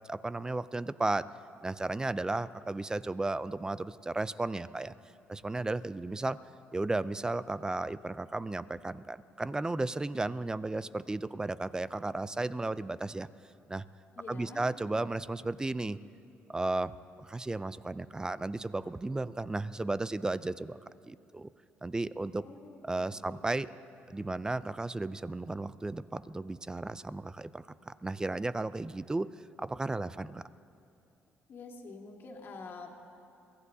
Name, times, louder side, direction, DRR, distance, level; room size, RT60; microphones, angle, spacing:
voice 1, 0.1-1.3 1.6-4.9 5.3-6.4 6.7-13.3 13.7-13.8 14.3-16.0 16.5-20.8 21.1-21.5 21.8-22.4 22.8-23.7 24.1-29.3 29.6-30.4, right 2 dB, 15° right, 16 dB, 0.4 m, -34 dB
voice 2, 14.1-14.6 22.4-22.8 23.2-23.4 31.5-32.9, left 4 dB, 55° left, 1 dB, 2.0 m, -46 dB
22.5 x 16.0 x 2.8 m, 2.6 s
supercardioid pair, 80°, 5 cm